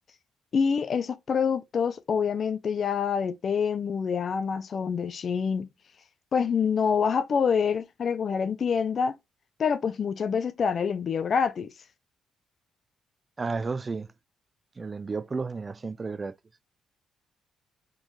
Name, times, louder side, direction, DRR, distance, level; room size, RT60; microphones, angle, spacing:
voice 1, 0.5-5.7 6.3-9.2 9.6-11.7, left 6 dB, 50° left, 0.5 m, -26 dB
voice 2, 13.4-14.1 14.8-16.4, right 4 dB, 30° right, 0.3 m, -32 dB
3.7 x 2.5 x 3.1 m
cardioid pair, 90°, 0 cm